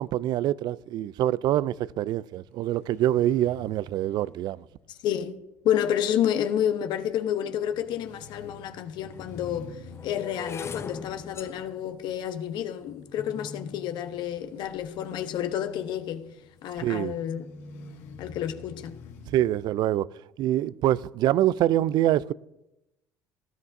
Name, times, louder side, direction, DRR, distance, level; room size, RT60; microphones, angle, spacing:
voice 1, 0.0-4.6 16.8-17.1 19.3-20.1 20.4-22.3, right 13 dB, 60° right, 0.4 m, -25 dB
sound 1, 2.5-19.7, left 4 dB, 85° left, 1.9 m, -49 dB
voice 2, 5.0-5.4 5.6-9.8 10.0-16.2 16.6-17.5 18.2-19.0, left 10 dB, 65° left, 1.0 m, -29 dB
sound 2, 8.2-8.3 9.1-15.2 15.9-16.2 16.5-16.9, left 5 dB, 30° left, 0.6 m, -42 dB
18.5 x 13.0 x 2.7 m
hypercardioid pair, 70°, 8 cm